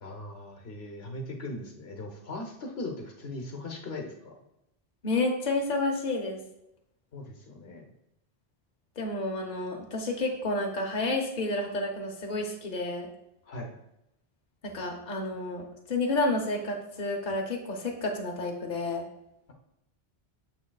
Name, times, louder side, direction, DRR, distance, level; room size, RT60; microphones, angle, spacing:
voice 1, 0.0-4.3 7.1-7.8 13.4-13.7, left 2 dB, 75° left, 2 dB, 1.2 m, -39 dB
voice 2, 5.0-6.4 9.0-13.1 14.6-19.1, left 2 dB, 50° left, 1 dB, 1.0 m, -30 dB
6.9 x 6.3 x 2.3 m, 0.85 s
omnidirectional pair, 1.1 m